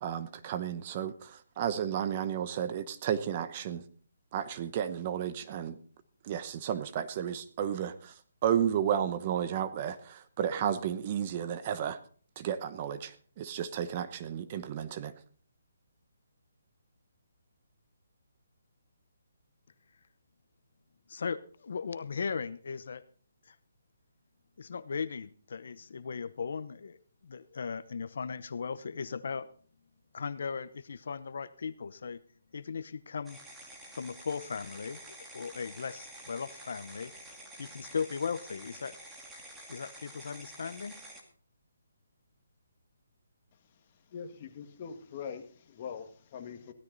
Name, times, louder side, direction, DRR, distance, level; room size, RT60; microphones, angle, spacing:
voice 1, 0.0-3.8 4.3-5.8 6.2-8.1 8.4-12.0 12.4-15.1, right 9 dB, 30° right, 11 dB, 0.9 m, -32 dB
voice 2, 21.1-23.0 23.5-23.6 24.6-27.0 27.2-29.5 30.1-32.2 32.5-33.4 34.0-37.1 37.6-38.9 39.7-41.0, left 5 dB, 60° left, 14 dB, 0.9 m, -37 dB
sound 1, 33.3-41.2, right 1 dB, 5° right, 2.2 m, -49 dB
voice 3, 44.1-46.7, left 6 dB, 30° left, 6 dB, 1.9 m, -43 dB
16.0 x 13.0 x 4.0 m, 0.43 s
hypercardioid pair, 165°, 0 cm